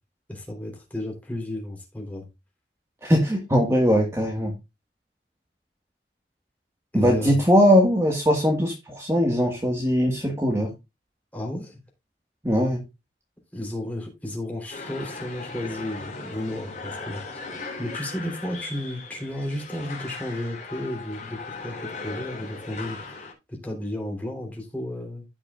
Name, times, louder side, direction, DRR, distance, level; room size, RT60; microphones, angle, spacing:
voice 1, 0.3-2.3 6.9-7.4 11.3-11.8 13.5-17.2 17.8-23.0 23.5-25.3, left 1 dB, 10° left, 3.5 m, -33 dB
voice 2, 3.0-4.5 6.9-10.7 12.4-12.8, equal, 15° right, 1.7 m, -20 dB
sound 1, 14.7-23.3, left 3 dB, 40° left, 3.5 m, -38 dB
15.5 x 6.1 x 2.4 m
head